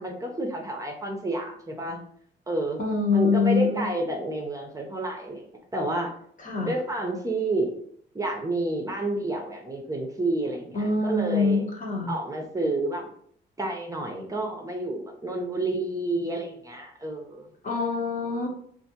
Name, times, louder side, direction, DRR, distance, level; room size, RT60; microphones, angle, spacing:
voice 1, 0.0-2.0 2.5-2.8 3.1-5.5 5.7-6.1 6.6-7.7 8.1-11.6 12.1-13.1 13.6-17.5, right 2 dB, 15° right, 1 dB, 0.6 m, -29 dB
voice 2, 2.8-3.9 6.4-6.7 10.7-12.1 17.6-18.5, left 4 dB, 40° left, 1 dB, 0.9 m, -25 dB
3.4 x 2.5 x 2.8 m, 0.63 s
cardioid pair, 90°, 20 cm